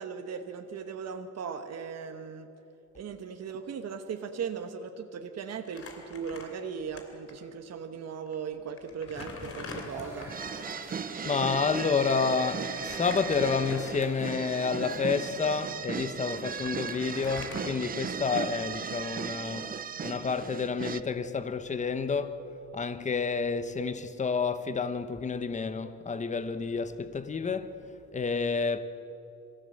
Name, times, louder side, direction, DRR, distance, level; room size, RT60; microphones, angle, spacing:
voice 1, 0.0-2.5 2.9-10.3, right 6 dB, 55° right, 1.2 m, -38 dB
Crumpling crinkling, 5.6-7.0 7.3-7.4 8.3-8.4 8.8-10.6 12.7-14.4 14.9-15.1 16.0-16.1 16.3-18.4, left 3 dB, 45° left, 3.1 m, -43 dB
Water tap faucet, 9.7-15.5, equal, 5° right, 6.0 m, -46 dB
sound 1, 10.3-21.0, right 7 dB, 30° right, 0.5 m, -37 dB
voice 2, 10.8-19.8 20.0-22.4 22.7-27.7 28.1-28.8, left 5 dB, 25° left, 0.9 m, -30 dB
23.0 x 15.5 x 7.7 m
cardioid pair, 130°, 31 cm